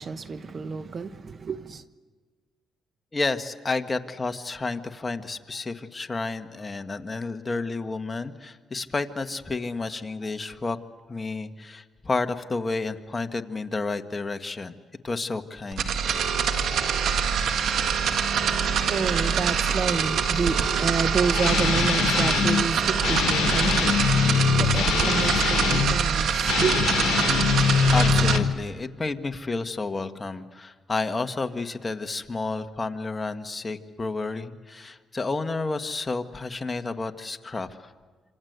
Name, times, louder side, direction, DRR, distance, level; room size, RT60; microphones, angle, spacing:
voice 1, 0.0-1.8 18.1-27.2, right 5 dB, 40° right, 1.1 m, -30 dB
voice 2, 3.1-10.8 11.1-14.8 15.0-15.9 27.9-37.9, left 3 dB, 25° left, 1.5 m, -31 dB
sound 1, 15.7-28.4, right 7 dB, 70° right, 1.8 m, -24 dB
Guitar, 21.3-22.7 23.0-26.0 26.4-28.6, left 7 dB, 80° left, 1.3 m, -23 dB
27.0 x 27.0 x 8.1 m
cardioid pair, 90°, 0 cm